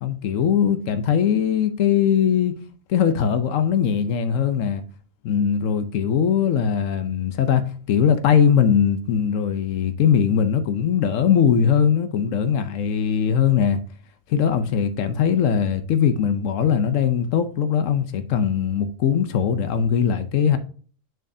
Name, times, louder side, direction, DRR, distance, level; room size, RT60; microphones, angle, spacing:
voice 1, 0.0-2.6 2.9-4.8 5.2-13.8 14.3-20.6, left 8 dB, 90° left, 1.1 m, -20 dB
6.5 x 6.4 x 2.7 m
omnidirectional pair, 1.3 m